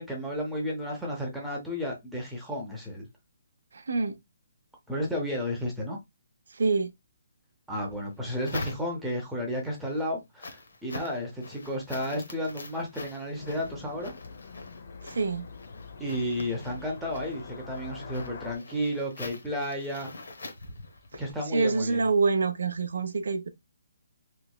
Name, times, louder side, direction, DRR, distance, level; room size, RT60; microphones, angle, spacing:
voice 1, 0.0-3.1 4.9-6.0 7.7-14.1 16.0-20.1 21.2-22.0, equal, 5° right, 0.7 m, -32 dB
voice 2, 3.7-4.2 6.5-6.9 15.0-15.5 21.1-21.2 21.5-23.5, right 4 dB, 75° right, 0.6 m, -26 dB
sound 1, 7.8-9.3 9.7-21.3, left 2 dB, 85° left, 0.8 m, -44 dB
sound 2, 13.3-18.6, left 5 dB, 45° left, 0.6 m, -44 dB
3.2 x 3.0 x 2.3 m
hypercardioid pair, 170°, 0 cm